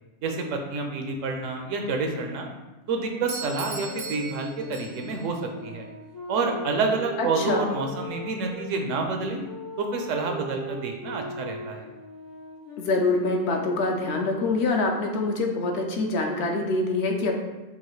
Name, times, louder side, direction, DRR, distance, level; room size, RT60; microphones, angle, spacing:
voice 1, 0.2-2.5 2.9-5.9 6.3-9.4 9.8-11.9, right 3 dB, 85° right, 4 dB, 1.0 m, -28 dB
sound 1, 2.9-8.7 9.4-15.1, right 1 dB, 25° left, 0.4 m, -40 dB
Doorbell, 3.3-5.3, right 5 dB, 50° right, 0.5 m, -38 dB
voice 2, 7.2-7.7 12.8-17.3, left 2 dB, 65° left, 2 dB, 0.8 m, -25 dB
5.4 x 2.4 x 3.1 m, 1.1 s
omnidirectional pair, 1.3 m